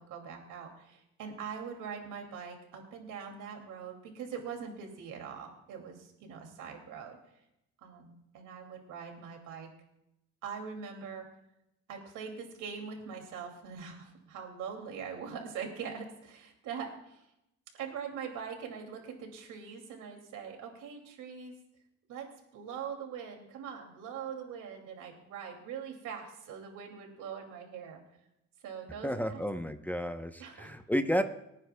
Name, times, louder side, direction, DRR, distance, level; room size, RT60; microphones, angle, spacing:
voice 1, 0.0-7.2 7.8-9.7 10.4-11.3 11.9-17.2 17.7-21.5 22.1-28.0 28.6-29.4 30.4-30.7, right 7 dB, 90° right, 3 dB, 2.7 m, -42 dB
voice 2, 29.0-31.2, equal, 5° left, 6 dB, 0.8 m, -31 dB
25.5 x 9.7 x 2.3 m, 0.84 s
cardioid pair, 90°, 30 cm